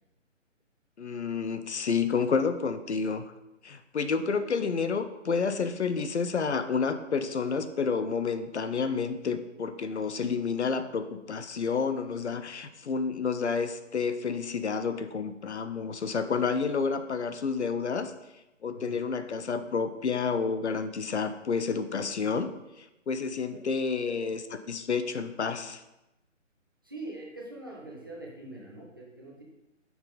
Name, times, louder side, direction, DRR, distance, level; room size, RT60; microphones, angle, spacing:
voice 1, 1.0-3.2 3.6-18.1 18.6-24.4 24.7-25.8, left 5 dB, 60° left, 10 dB, 0.6 m, -30 dB
voice 2, 26.8-29.4, right 2 dB, 20° right, -4 dB, 0.5 m, -43 dB
6.9 x 4.1 x 3.9 m, 0.94 s
figure-of-eight pair, 150°, 38 cm